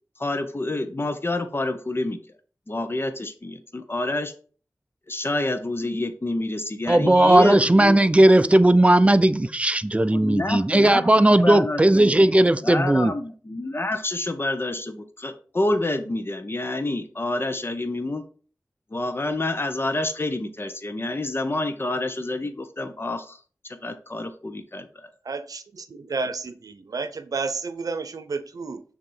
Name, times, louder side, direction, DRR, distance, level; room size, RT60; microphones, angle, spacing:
voice 1, 0.2-2.2 2.7-4.3 5.1-8.0 10.1-11.0 11.4-12.3 12.6-18.2 18.9-23.4 23.7-25.1, left 2 dB, 40° left, 8 dB, 1.0 m, -28 dB
voice 2, 6.9-13.1, right 1 dB, 20° right, 12 dB, 0.5 m, -17 dB
voice 3, 25.2-28.8, right 4 dB, 75° right, 10 dB, 0.7 m, -31 dB
6.7 x 3.0 x 5.6 m, 0.41 s
cardioid pair, 45°, 6 cm